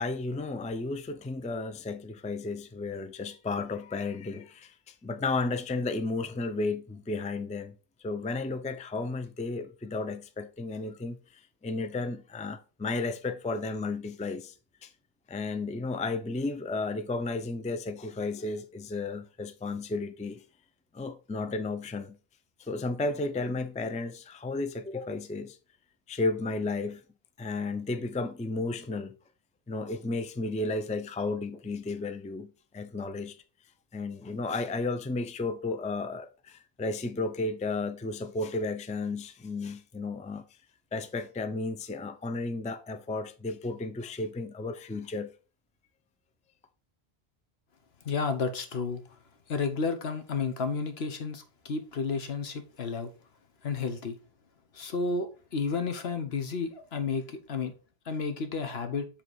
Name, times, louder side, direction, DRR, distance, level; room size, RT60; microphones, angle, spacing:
voice 1, 0.0-7.8 8.0-14.5 14.8-14.9 15.3-20.4 20.9-22.2 22.6-25.6 26.1-27.0 27.4-29.1 29.7-33.3 33.9-40.4 40.9-45.3, left 3 dB, 10° left, 0.3 m, -33 dB
voice 2, 48.0-49.0 49.5-53.1 53.6-54.2 54.7-57.7 58.1-59.1, left 4 dB, 80° left, 1.2 m, -31 dB
7.6 x 3.5 x 4.7 m
omnidirectional pair, 1.0 m